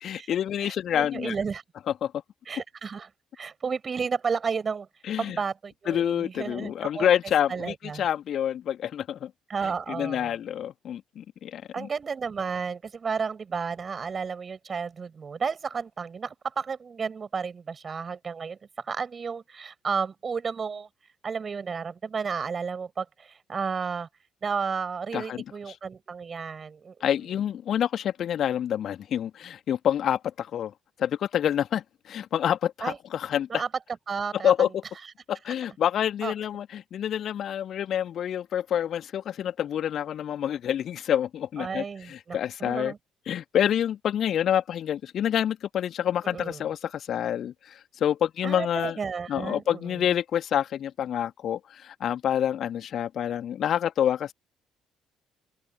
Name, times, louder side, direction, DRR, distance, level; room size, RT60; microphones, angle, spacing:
voice 1, 0.0-1.4 1.9-2.1 5.0-5.4 5.9-9.3 9.9-11.9 25.1-25.8 27.0-30.7 31.0-33.5 34.4-34.8 35.3-42.9 43.3-49.0 49.3-54.3, left 10 dB, 50° left, 3.0 m, -27 dB
voice 2, 0.6-1.6 2.5-3.1 3.4-4.9 5.2-7.1 7.5-8.0 9.5-10.3 11.7-20.9 21.2-24.1 24.4-27.1 32.8-33.0 33.5-33.7 34.1-34.5 36.2-36.3 41.6-43.0 46.3-46.6 48.4-50.0, right 5 dB, 35° right, 7.6 m, -32 dB
open air
figure-of-eight pair, 45°, 0 cm